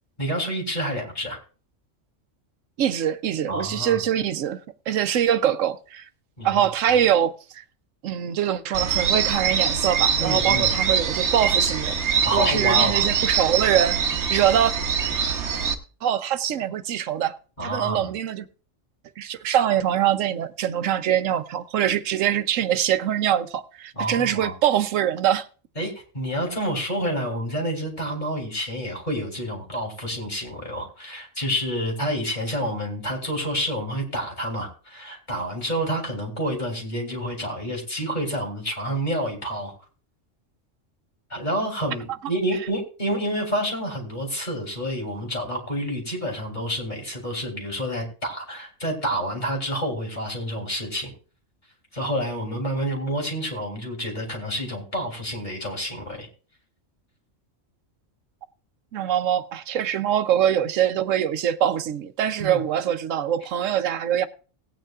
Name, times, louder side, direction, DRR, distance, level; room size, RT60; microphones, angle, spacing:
voice 1, 0.2-1.4 3.5-4.0 6.4-6.6 6.9-7.0 10.2-10.7 12.2-13.1 17.6-18.1 23.9-24.5 25.7-39.7 41.3-51.1 51.9-56.3 62.4-62.6, equal, 35° left, 3.2 m, -28 dB
voice 2, 2.8-4.6 4.9-6.0 6.4-7.6 8.0-12.0 12.3-14.0 14.3-14.7 16.0-17.3 17.6-18.5 19.2-25.5 58.9-64.3, right 10 dB, 80° right, 1.0 m, -23 dB
sound 1, 8.7-15.7, right 7 dB, 65° right, 1.2 m, -23 dB
18.0 x 9.1 x 2.4 m
omnidirectional pair, 1.3 m